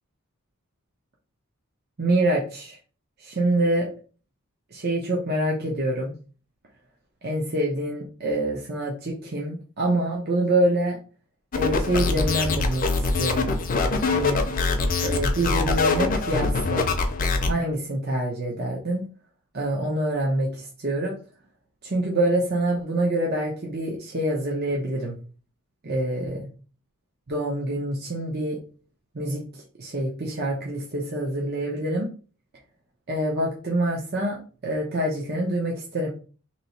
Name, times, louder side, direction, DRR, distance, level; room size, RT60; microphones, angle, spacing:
voice 1, 2.0-2.8 3.2-3.9 4.7-6.1 7.2-11.0 11.5-13.5 14.1-14.5 15.0-16.9 17.4-19.0 19.5-21.1 21.8-25.1 25.8-26.5 27.3-28.6 29.1-29.4 29.8-32.1 33.1-36.1, right 1 dB, 45° right, -2 dB, 0.8 m, -26 dB
sound 1, 11.5-17.5, left 3 dB, 40° left, 0.6 m, -23 dB
3.0 x 2.8 x 4.1 m, 0.38 s
head